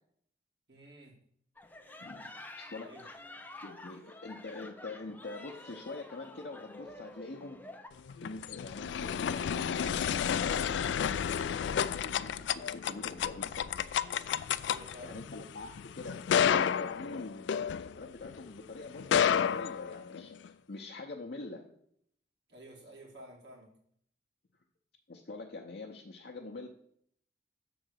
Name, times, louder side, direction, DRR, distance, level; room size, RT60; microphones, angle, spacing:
voice 1, 0.7-1.2 2.8-3.0 14.6-15.2 22.5-23.7, equal, 65° right, -2 dB, 2.2 m, -51 dB
sound 1, 1.6-7.9, left 2 dB, 10° left, 0.5 m, -49 dB
voice 2, 2.0-3.1 3.6-7.6 8.2-13.7 15.0-21.7 25.1-26.7, left 3 dB, 60° left, 1 dB, 0.7 m, -45 dB
sound 2, 8.0-18.4 19.0-20.5, left 8 dB, 80° left, 0.3 m, -31 dB
6.9 x 3.9 x 6.4 m, 0.67 s
head